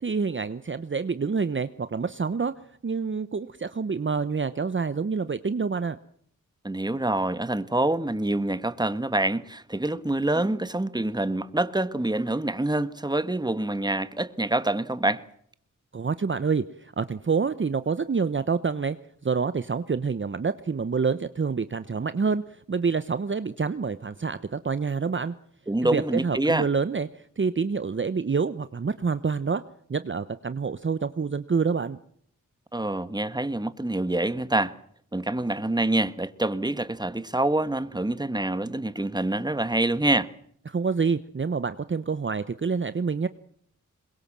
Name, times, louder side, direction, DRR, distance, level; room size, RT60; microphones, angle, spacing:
voice 1, 0.0-2.5 2.8-6.0 15.9-19.0 19.2-25.3 25.8-29.6 29.9-32.0 40.7-43.3, right 5 dB, 40° right, 0.9 m, -27 dB
voice 2, 6.6-15.2 25.7-26.7 32.7-34.7 35.1-40.3, right 2 dB, 15° right, 1.5 m, -26 dB
22.0 x 21.5 x 7.5 m
cardioid pair, 50°, 32 cm